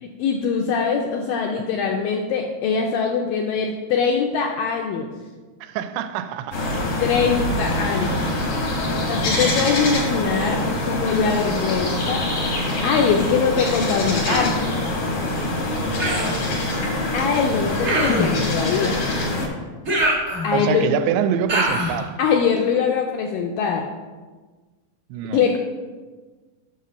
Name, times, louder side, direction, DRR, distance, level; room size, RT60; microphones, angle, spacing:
voice 1, 0.0-5.1 7.0-8.2 9.1-12.2 12.8-14.7 17.1-19.0 20.4-20.9 22.2-23.8 25.3-25.6, left 6 dB, 80° left, 2.0 m, -22 dB
voice 2, 5.6-6.8 15.7-16.0 20.5-22.2 25.1-25.6, right 9 dB, 85° right, 2.6 m, -26 dB
sound 1, 6.5-19.5, left 1 dB, 65° left, 1.3 m, -24 dB
Human voice, 14.2-14.6 16.0-16.4 17.8-18.4 19.8-20.7 21.5-22.0, equal, 40° right, 0.9 m, -23 dB
7.3 x 6.6 x 5.6 m
omnidirectional pair, 4.6 m